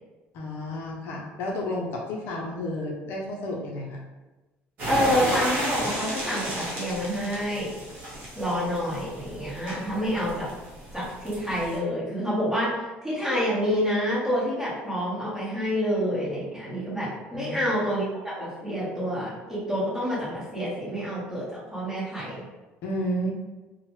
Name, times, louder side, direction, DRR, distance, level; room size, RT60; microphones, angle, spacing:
voice 1, 0.3-4.0 17.3-17.7 22.8-23.3, left 1 dB, 60° left, -1 dB, 0.4 m, -31 dB
sound 1, 4.8-11.8, right 1 dB, 45° right, 0.9 m, -33 dB
voice 2, 4.9-7.7 8.3-10.5 10.9-12.7 13.0-22.4, equal, 10° right, -9 dB, 1.0 m, -28 dB
2.9 x 2.0 x 3.0 m, 1.1 s
cardioid pair, 165°, 4 cm